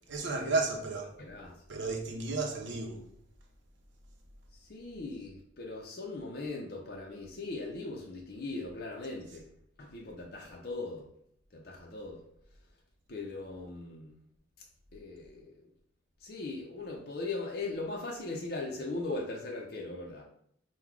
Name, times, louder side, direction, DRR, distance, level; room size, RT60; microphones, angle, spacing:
voice 1, 0.1-1.1 1.7-3.1, right 3 dB, 70° right, 0.8 m, -33 dB
voice 2, 1.2-1.6 4.5-9.5 9.8-11.1 11.5-12.2 13.1-14.1 14.9-15.6 16.2-20.2, left 3 dB, 50° left, 0.6 m, -39 dB
3.8 x 2.3 x 4.5 m
head